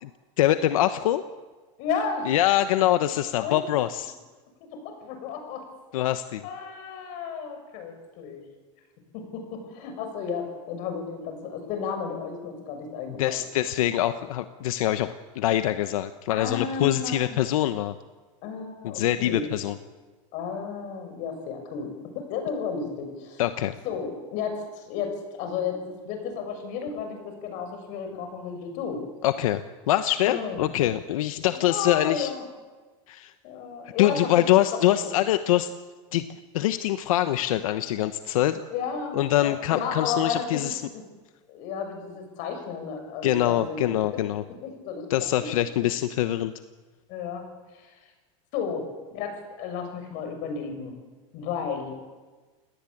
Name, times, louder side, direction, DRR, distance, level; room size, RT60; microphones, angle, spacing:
voice 1, 0.4-1.2 2.2-4.1 5.9-6.5 13.2-17.9 18.8-19.7 23.4-23.7 29.2-32.3 33.1-33.3 34.0-35.7 36.1-36.2 36.5-38.6 39.1-40.8 43.2-44.4 45.1-46.5, left 13 dB, 90° left, 10 dB, 1.1 m, -24 dB
voice 2, 1.8-2.3 3.4-3.6 4.6-5.7 6.4-8.4 9.1-13.4 16.3-17.4 18.4-19.5 20.3-23.4 23.8-29.0 30.2-30.6 31.5-32.4 33.4-34.4 34.7-35.2 38.7-41.0 41.5-44.2 44.5-45.1 45.3-45.6 45.9-46.0 47.1-47.5 47.7-48.0 48.5-50.9 51.3-51.9, left 6 dB, 50° left, 6 dB, 7.0 m, -33 dB
28.5 x 18.5 x 8.7 m, 1.3 s
supercardioid pair, 155°, 17 cm